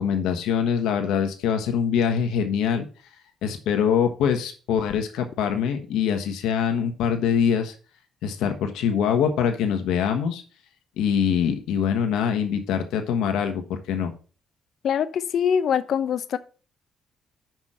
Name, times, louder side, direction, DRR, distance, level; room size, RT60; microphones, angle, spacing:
voice 1, 0.0-2.9 3.4-7.7 8.2-10.4 11.0-14.1, left 7 dB, 90° left, 5 dB, 1.4 m, -24 dB
voice 2, 14.8-16.4, left 8 dB, 65° left, 12 dB, 0.7 m, -23 dB
5.9 x 5.3 x 6.3 m, 0.37 s
cardioid pair, 90°, 0 cm